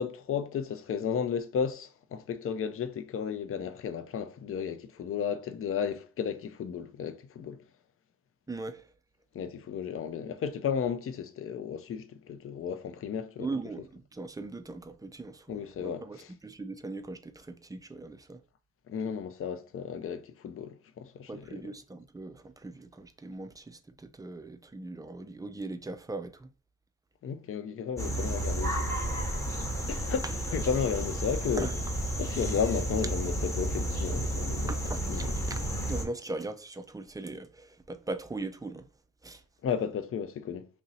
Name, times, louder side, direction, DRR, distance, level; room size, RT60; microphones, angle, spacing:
voice 1, 0.0-7.6 9.3-13.5 15.5-16.3 18.9-21.6 27.2-28.9 29.9-30.2 30.5-31.7 32.2-34.7 35.1-35.3 39.6-40.7, left 7 dB, 40° left, 0.5 m, -33 dB
voice 2, 8.5-8.9 13.4-18.4 21.3-26.5 30.2-30.3 31.6-31.7 34.7-35.6 35.9-38.9 39.2-39.4, right 3 dB, 10° right, 0.4 m, -40 dB
sound 1, 28.0-36.0, right 1 dB, 10° left, 0.9 m, -32 dB
3.1 x 2.7 x 3.9 m
cardioid pair, 80°, 33 cm